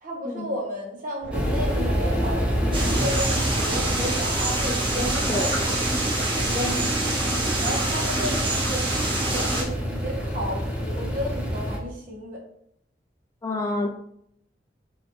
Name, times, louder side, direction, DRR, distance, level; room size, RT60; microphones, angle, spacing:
voice 1, 0.0-5.8 6.3-8.9 9.1-12.4, equal, 50° right, -1 dB, 1.2 m, -33 dB
sound 1, 1.2-6.9, right 1 dB, 85° right, 0.5 m, -38 dB
sound 2, 1.3-11.8, equal, 5° right, 0.7 m, -28 dB
sound 3, 2.7-9.6, right 2 dB, 30° right, 1.0 m, -26 dB
voice 2, 13.4-13.9, left 2 dB, 15° left, 2 dB, 0.3 m, -28 dB
4.9 x 2.6 x 3.1 m, 0.71 s
head